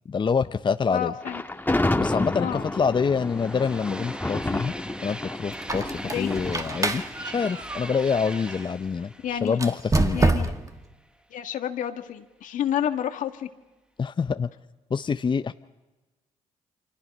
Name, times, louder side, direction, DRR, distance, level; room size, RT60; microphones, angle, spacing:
voice 1, 0.1-1.1 2.0-4.7 5.0-7.0 7.3-10.2 14.0-14.5 14.9-15.5, left 5 dB, 35° left, 11 dB, 0.7 m, -26 dB
voice 2, 0.9-1.4 2.4-2.7 6.0-6.3 9.2-9.6 10.1-10.5 11.3-13.5, left 10 dB, 70° left, 7 dB, 1.8 m, -29 dB
Thunder, 1.2-8.4, left 2 dB, 15° left, 1.6 m, -30 dB
sound 1, 2.3-10.6, right 1 dB, 5° right, 1.3 m, -42 dB
Squeak, 5.5-8.7 9.5-10.8, right 2 dB, 25° right, 1.8 m, -27 dB
29.5 x 25.5 x 5.5 m, 1.2 s
supercardioid pair, 60°, 14 cm